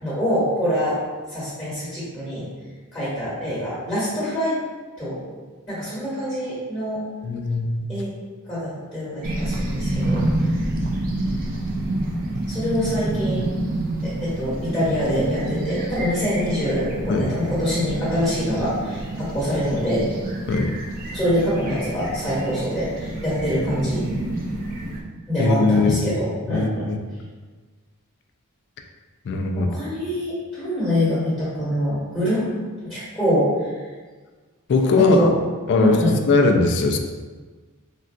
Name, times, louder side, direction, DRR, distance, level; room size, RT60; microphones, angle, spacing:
voice 1, 0.0-1.0 1.3-2.5 2.9-4.6 5.0-5.2 5.7-7.0 7.9-8.1 8.5-10.3 12.5-13.5 14.0-20.2 21.1-24.0 25.3-26.9 29.6-32.5 32.8-33.5 35.0-35.3 35.7-36.2, equal, 10° left, -11 dB, 1.3 m, -25 dB
voice 2, 7.2-7.9 17.1-17.3 20.5-20.7 25.4-26.2 26.5-27.0 29.3-29.7 34.7-35.3 35.7-37.0, left 3 dB, 50° left, 4 dB, 0.3 m, -20 dB
sound 1, 9.2-25.0, right 1 dB, 40° right, 0.4 m, -28 dB
3.8 x 2.4 x 2.2 m, 1.4 s
head